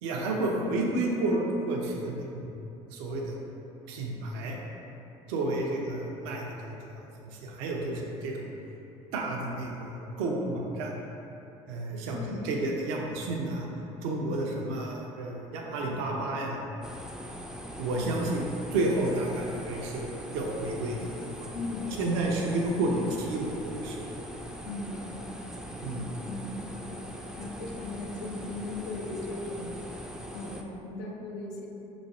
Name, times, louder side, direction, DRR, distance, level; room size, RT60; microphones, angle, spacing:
voice 1, 0.0-2.5 2.9-3.4 3.9-4.6 5.3-8.5 9.1-10.9 11.7-13.7 14.0-16.6 17.8-20.1 20.3-21.5 22.0-24.1 25.8-26.0, right 2 dB, 80° right, -1 dB, 0.6 m, -31 dB
voice 2, 12.1-12.5 21.5-22.5 22.8-23.0 23.5-23.6 24.3-25.4 26.3-27.0 27.4-29.8 30.3-31.7, left 2 dB, 90° left, -1 dB, 0.6 m, -38 dB
sound 1, 16.8-30.6, equal, 5° right, 0.4 m, -41 dB
5.1 x 3.1 x 2.6 m, 2.9 s
supercardioid pair, 75°, 15 cm